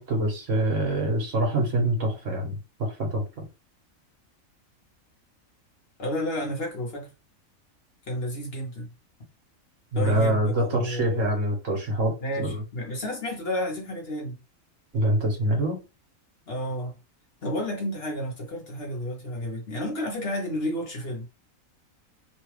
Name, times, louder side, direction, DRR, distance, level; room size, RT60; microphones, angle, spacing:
voice 1, 0.0-3.5 9.9-12.6 14.9-15.8, right 1 dB, 65° right, 1.4 m, -25 dB
voice 2, 6.0-7.1 8.1-8.9 9.9-11.2 12.2-14.4 16.5-17.0 17.4-21.3, left 1 dB, 50° left, 1.1 m, -31 dB
3.1 x 2.3 x 3.1 m
omnidirectional pair, 1.5 m